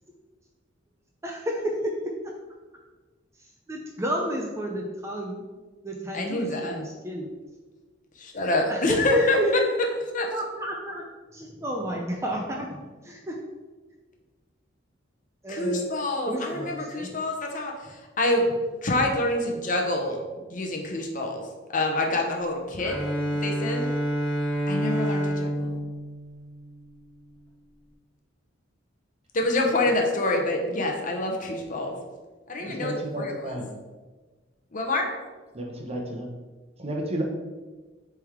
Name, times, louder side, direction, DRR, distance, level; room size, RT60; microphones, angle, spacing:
voice 1, 1.2-1.9 3.4-5.4 5.8-7.3 8.7-9.5 10.3-11.0 11.3-13.4 15.4-15.9 16.3-17.2, equal, 15° right, 0 dB, 0.6 m, -31 dB
voice 2, 6.1-6.8 8.2-9.6 10.1-10.3 15.5-17.8 18.2-18.5 18.8-20.2 20.5-21.4 21.7-23.0 23.4-23.9 24.7-25.8 29.3-32.0 32.5-33.3 34.7-35.1, left 2 dB, 45° left, 2 dB, 0.8 m, -26 dB
Bowed string instrument, 22.8-26.9, equal, 5° left, 1.6 m, -28 dB
voice 3, 32.6-33.7 35.5-36.3 36.8-37.2, right 1 dB, 35° right, 0 dB, 1.0 m, -32 dB
7.7 x 3.5 x 3.6 m, 1.3 s
head